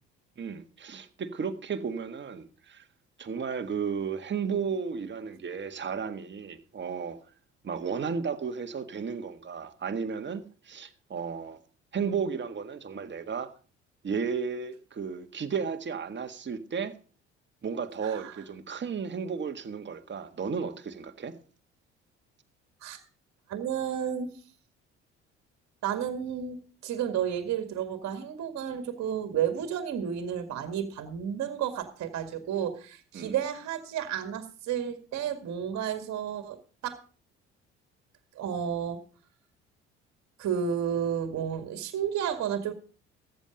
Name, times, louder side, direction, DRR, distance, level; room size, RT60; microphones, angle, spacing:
voice 1, 0.4-2.8 3.2-7.2 7.6-11.6 11.9-13.5 14.0-17.0 17.6-21.4 33.1-33.3, right 6 dB, 35° right, 1.6 m, -34 dB
voice 2, 18.0-18.3 22.8-23.0 23.5-24.3 25.8-36.6 36.8-37.0 38.4-39.0 40.4-42.7, right 8 dB, 55° right, 2.0 m, -32 dB
14.5 x 9.3 x 5.1 m
hypercardioid pair, 55°, 32 cm